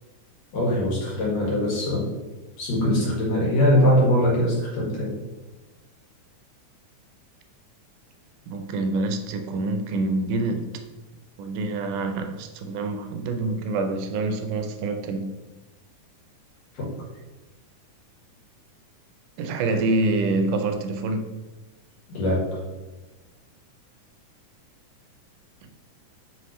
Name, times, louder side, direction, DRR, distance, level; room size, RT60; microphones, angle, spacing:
voice 1, 0.5-2.1 2.6-5.1 16.7-16.9 22.1-22.6, left 1 dB, 60° left, 3.0 m, -22 dB
voice 2, 8.5-10.8 11.4-15.3 19.4-21.3, right 2 dB, 90° right, 2.3 m, -26 dB
8.5 x 5.2 x 3.1 m
omnidirectional pair, 3.6 m